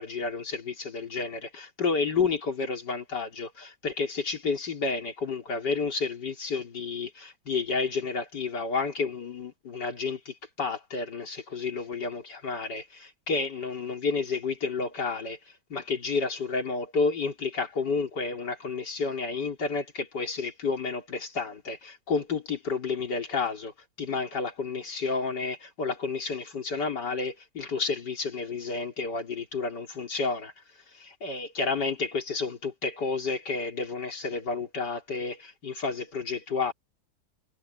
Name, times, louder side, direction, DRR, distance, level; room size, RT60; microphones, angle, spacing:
voice 1, 0.0-15.4 15.7-30.5 30.9-36.7, left 4 dB, 80° left, 4.0 m, -31 dB
omnidirectional pair, 1.8 m